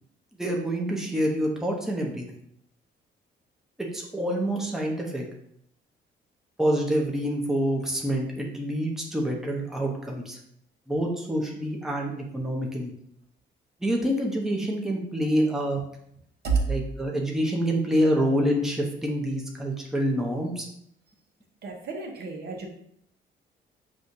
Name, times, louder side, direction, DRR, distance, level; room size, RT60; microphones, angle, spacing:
voice 1, 0.4-2.2 3.9-5.2 6.6-10.4 10.9-12.9 13.8-15.8 16.7-20.7, equal, ahead, -1 dB, 0.8 m, -27 dB
voice 2, 21.6-22.7, right 5 dB, 55° right, 1 dB, 0.9 m, -29 dB
6.2 x 2.4 x 2.7 m, 0.71 s
cardioid pair, 90°, 20 cm